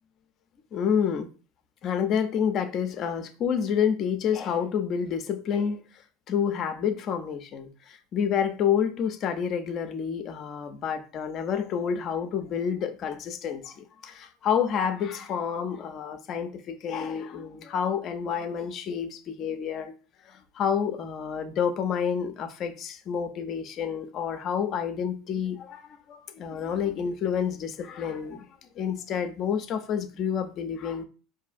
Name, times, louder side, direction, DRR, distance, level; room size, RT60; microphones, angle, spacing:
voice 1, 0.7-1.3 1.8-5.8 6.3-19.9 20.3-25.8 26.1-28.4 28.8-31.0, left 7 dB, 45° left, 0.5 m, -29 dB
4.8 x 2.6 x 2.5 m
supercardioid pair, 100°, 0 cm